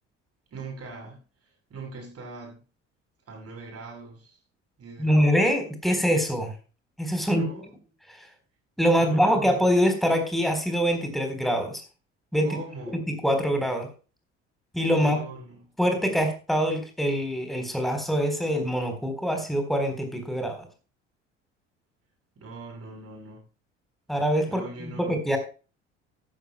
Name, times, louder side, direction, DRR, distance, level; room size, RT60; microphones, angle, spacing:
voice 1, 0.5-2.6 3.3-4.4 4.8-5.4 7.2-7.7 9.0-9.5 12.4-13.0 15.0-15.7 22.4-23.5 24.4-25.4, right 3 dB, 40° right, 2 dB, 6.9 m, -41 dB
voice 2, 5.0-6.5 7.0-7.4 8.1-8.3 8.8-11.8 12.3-12.6 13.1-13.9 14.7-15.2 15.8-20.7 24.1-25.4, equal, ahead, 6 dB, 3.9 m, -24 dB
15.0 x 12.5 x 2.2 m, 0.34 s
figure-of-eight pair, 60°, 37 cm